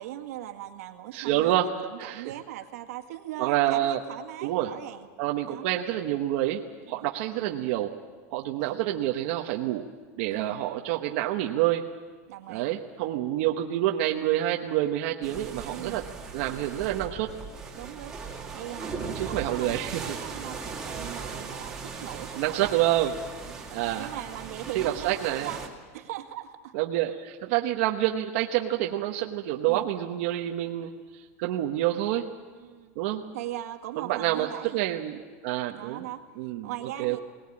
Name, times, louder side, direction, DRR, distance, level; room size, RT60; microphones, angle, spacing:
voice 1, 0.0-5.1 5.5-5.7 6.9-7.1 8.6-8.8 10.3-10.6 12.3-12.7 15.7-16.0 17.7-18.2 18.5-22.7 23.5-23.7 24.0-25.7 25.9-26.7 29.7-29.9 32.6-32.9 33.3-34.8 35.7-36.2 36.6-37.2, right 13 dB, 80° right, 5 dB, 1.9 m, -39 dB
voice 2, 1.1-1.7 2.0-2.2 3.4-4.0 4.4-4.7 5.2-7.9 8.3-9.9 10.2-11.9 12.5-16.1 16.3-17.3 19.1-20.2 21.3-21.4 22.4-23.1 23.7-24.1 24.7-25.5 26.7-32.3 33.0-33.2 34.0-36.0 36.4-37.2, right 13 dB, 50° right, 1 dB, 1.1 m, -28 dB
sound 1, 15.2-25.7, right 5 dB, 5° right, 2.2 m, -38 dB
21.0 x 19.5 x 8.7 m, 1.5 s
supercardioid pair, 180°, 8 cm